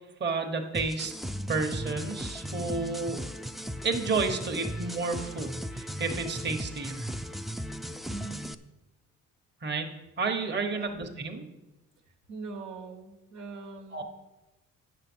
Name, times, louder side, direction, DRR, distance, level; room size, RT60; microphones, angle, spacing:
voice 1, 0.2-1.1 1.5-3.2 3.8-6.9 9.6-11.5 13.9-14.0, right 4 dB, 35° right, 4 dB, 1.2 m, -31 dB
sound 1, 0.7-8.5, equal, ahead, 0.4 m, -37 dB
voice 2, 8.1-8.5 10.7-10.9 12.3-14.0, right 4 dB, 85° right, 2 dB, 1.4 m, -41 dB
9.0 x 6.6 x 6.2 m, 1.0 s
cardioid pair, 90°, 30 cm